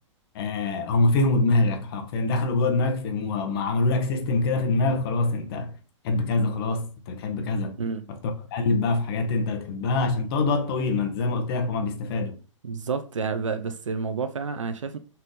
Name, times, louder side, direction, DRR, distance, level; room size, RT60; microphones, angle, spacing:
voice 1, 0.3-5.7 6.0-7.8 8.1-8.2 8.5-12.4, left 3 dB, 45° left, 1.6 m, -24 dB
voice 2, 12.6-15.0, right 5 dB, 70° right, 0.9 m, -29 dB
5.9 x 5.7 x 4.0 m
figure-of-eight pair, 105°, 17 cm